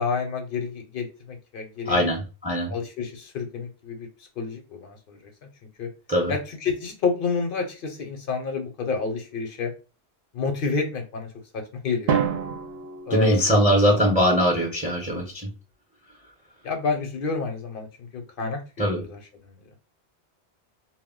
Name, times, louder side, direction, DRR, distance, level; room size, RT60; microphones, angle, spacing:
voice 1, 0.0-2.0 2.7-4.1 4.4-5.2 5.8-5.9 6.3-9.7 10.3-11.3 11.8-12.2 13.1-13.4 16.6-17.9 18.1-18.6 19.0-19.5, left 4 dB, 60° left, 4 dB, 0.7 m, -29 dB
voice 2, 1.9-2.7 6.1-6.3 13.1-15.5 18.8-19.0, equal, 10° right, -1 dB, 0.6 m, -21 dB
Drum, 12.1-14.1, right 7 dB, 65° right, 0.7 m, -28 dB
2.2 x 2.1 x 3.5 m, 0.32 s
omnidirectional pair, 1.1 m